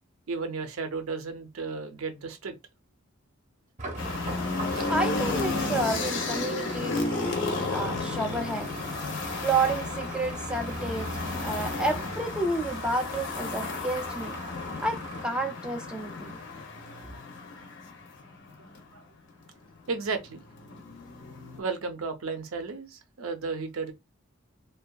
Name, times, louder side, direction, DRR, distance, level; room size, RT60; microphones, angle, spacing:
voice 1, 0.3-2.6 4.7-4.9 18.9-19.0 19.9-20.4 21.6-23.9, right 4 dB, 80° right, 0.6 m, -34 dB
sound 1, 3.8-15.2, right 2 dB, 35° right, 0.7 m, -40 dB
sound 2, 4.0-18.8 19.9-21.6, left 3 dB, 60° left, 0.6 m, -33 dB
voice 2, 4.9-8.7 9.4-11.1 11.4-14.3 14.8-16.4, right 2 dB, 5° right, 0.3 m, -30 dB
2.6 x 2.3 x 2.2 m
head